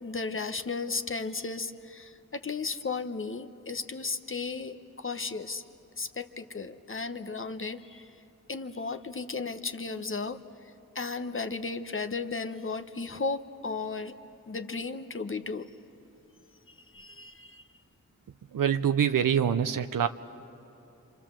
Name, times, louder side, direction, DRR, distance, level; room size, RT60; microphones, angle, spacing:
voice 1, 0.0-5.6 6.0-8.1 8.5-10.4 10.9-14.1 14.5-15.7 16.9-17.6, left 4 dB, 40° left, 8 dB, 1.1 m, -35 dB
voice 2, 18.5-20.1, right 8 dB, 90° right, 9 dB, 0.7 m, -25 dB
28.5 x 25.0 x 7.6 m, 3.0 s
cardioid pair, 60°, 32 cm